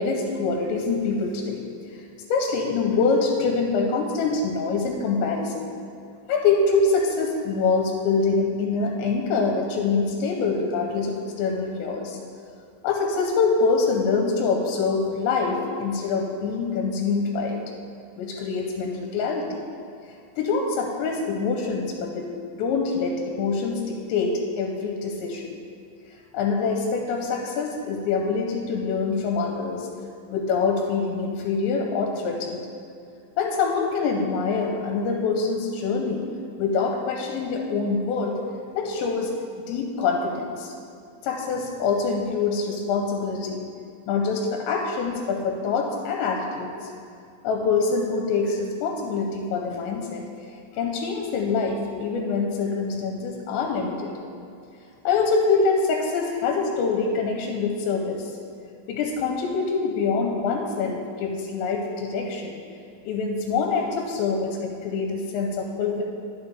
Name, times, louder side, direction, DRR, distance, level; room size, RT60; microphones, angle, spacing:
voice 1, 0.0-1.7 2.3-5.7 6.3-12.2 12.8-17.6 18.2-19.7 20.4-25.6 26.3-29.9 30.3-32.6 33.4-36.2 36.6-38.3 38.8-39.3 39.7-40.7 41.2-43.6 44.1-46.9 47.4-50.2 50.7-54.1 55.0-58.3 58.9-62.6 63.1-66.0, left 4 dB, 85° left, 1 dB, 2.9 m, -25 dB
11.5 x 6.9 x 3.4 m, 2.4 s
omnidirectional pair, 5.3 m